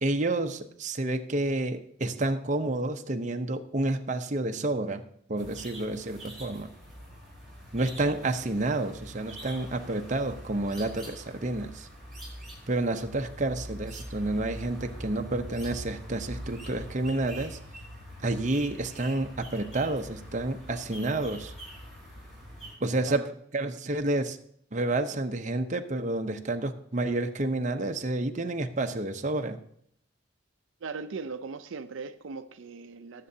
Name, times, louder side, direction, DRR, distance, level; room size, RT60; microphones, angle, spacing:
voice 1, 0.0-5.0 5.3-6.7 7.7-11.9 12.7-17.6 18.2-21.5 22.8-23.3 23.5-24.4 24.7-29.6, right 2 dB, 40° right, 0.7 m, -29 dB
sound 1, 5.4-22.7, equal, ahead, 4.3 m, -44 dB
voice 2, 30.8-33.3, right 4 dB, 75° right, 0.5 m, -39 dB
19.5 x 7.6 x 2.8 m
head